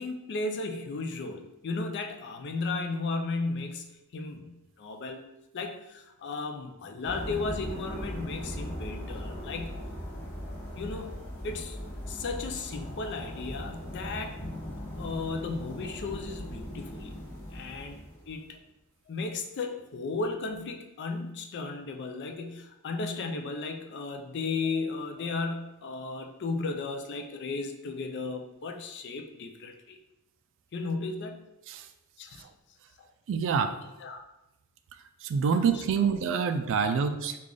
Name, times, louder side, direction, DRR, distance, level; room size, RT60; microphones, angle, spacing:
voice 1, 0.0-5.2 5.5-9.8 10.7-11.1 11.4-11.8 12.1-14.6 15.0-17.2 17.5-18.0 18.3-18.6 19.1-30.0 30.7-31.5 32.2-32.5 34.0-34.2 35.7-35.8 36.8-37.1, left 3 dB, 50° left, 4 dB, 0.4 m, -35 dB
sound 1, 7.0-18.4, equal, 10° left, 0.9 m, -39 dB
voice 2, 33.3-33.8 35.2-37.4, right 6 dB, 60° right, 9 dB, 0.3 m, -26 dB
3.3 x 2.4 x 3.8 m, 0.91 s
head